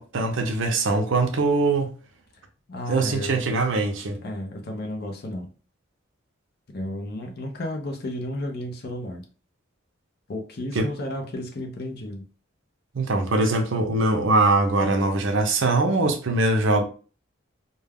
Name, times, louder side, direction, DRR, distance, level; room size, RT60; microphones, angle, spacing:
voice 1, 0.0-1.9 2.9-4.2 10.7-10.9 12.9-16.8, right 2 dB, 60° right, 0.5 m, -22 dB
voice 2, 2.7-3.4 4.2-5.5 6.7-9.2 10.3-12.2, left 1 dB, 50° left, 0.5 m, -33 dB
2.3 x 2.2 x 3.4 m
head